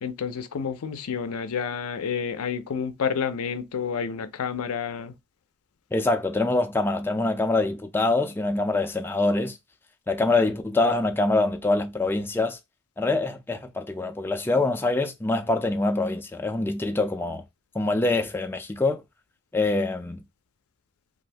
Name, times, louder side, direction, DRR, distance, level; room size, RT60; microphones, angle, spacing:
voice 1, 0.0-5.2, left 6 dB, 85° left, 0.5 m, -29 dB
voice 2, 5.9-9.6 10.1-12.6 13.0-17.4 17.7-19.0 19.5-20.2, left 2 dB, 10° left, 0.3 m, -24 dB
2.6 x 2.4 x 3.3 m
head